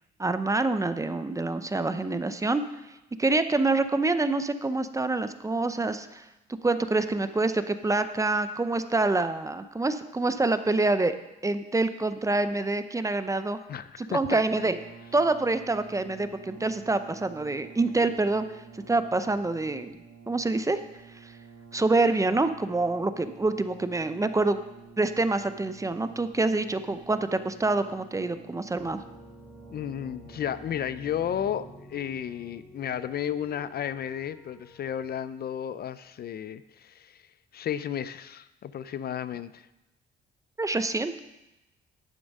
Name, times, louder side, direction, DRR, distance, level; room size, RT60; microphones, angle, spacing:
voice 1, 0.2-6.3 6.6-11.1 11.4-13.6 14.0-14.8 15.1-20.0 20.3-20.8 21.2-21.3 21.7-24.6 25.0-29.0 40.6-41.2, right 2 dB, 15° right, 10 dB, 0.6 m, -26 dB
voice 2, 13.7-14.2 29.7-37.2 37.5-39.7, left 9 dB, 50° left, 14 dB, 0.5 m, -33 dB
Brass instrument, 14.3-32.1, right 6 dB, 85° right, 2.1 m, -50 dB
sound 1, 28.8-35.1, left 2 dB, ahead, 0.9 m, -51 dB
10.5 x 7.0 x 5.4 m, 0.94 s
cardioid pair, 90°, 20 cm